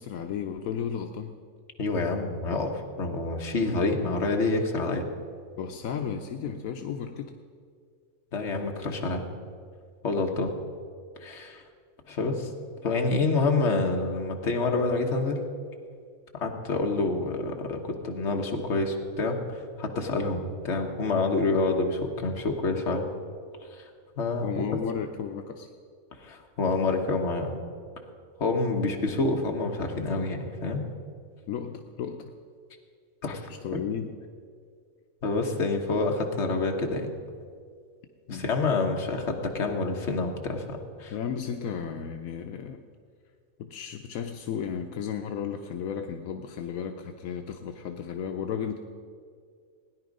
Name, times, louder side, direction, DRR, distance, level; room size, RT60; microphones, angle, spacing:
voice 1, 0.0-1.3 5.6-7.3 24.4-25.7 28.8-29.3 31.5-32.3 33.5-34.1 38.3-38.5 41.1-42.8 43.6-48.8, left 7 dB, 80° left, 5 dB, 1.1 m, -34 dB
voice 2, 1.8-5.1 8.3-9.2 10.0-10.5 11.2-11.6 12.1-12.5 12.8-15.4 16.3-23.1 23.7-23.8 24.2-24.6 26.2-27.6 28.4-30.9 33.2-33.4 33.7-33.8 35.2-37.2 38.3-41.1, left 3 dB, 55° left, 2 dB, 1.5 m, -27 dB
17.0 x 10.0 x 5.2 m, 2.1 s
omnidirectional pair, 1.5 m